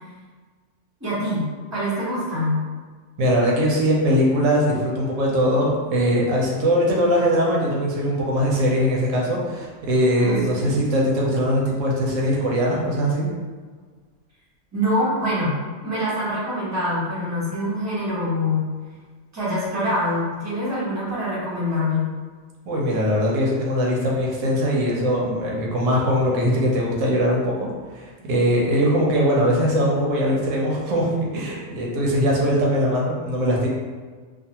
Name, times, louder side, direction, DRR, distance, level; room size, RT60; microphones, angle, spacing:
voice 1, 1.0-2.6 10.2-10.8 14.7-18.7 19.3-22.1, left 1 dB, 15° right, -10 dB, 1.0 m, -25 dB
voice 2, 3.2-13.3 22.7-33.7, equal, 90° right, -3 dB, 1.0 m, -21 dB
2.4 x 2.4 x 2.8 m, 1.5 s
omnidirectional pair, 1.3 m